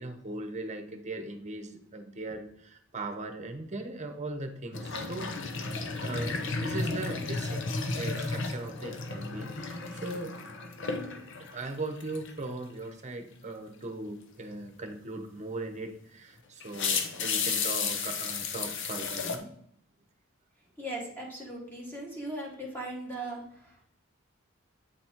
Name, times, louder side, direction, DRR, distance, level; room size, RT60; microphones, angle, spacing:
voice 1, 0.0-7.6 7.9-10.3 11.4-19.5, right 2 dB, 35° right, 6 dB, 1.0 m, -39 dB
sound 1, 4.7-11.7 12.0-12.4 15.7-15.8 16.6-19.4, left 4 dB, 60° left, 0.8 m, -33 dB
voice 2, 20.8-23.8, right 1 dB, 10° left, -2 dB, 2.0 m, -38 dB
8.8 x 4.2 x 4.4 m, 0.69 s
head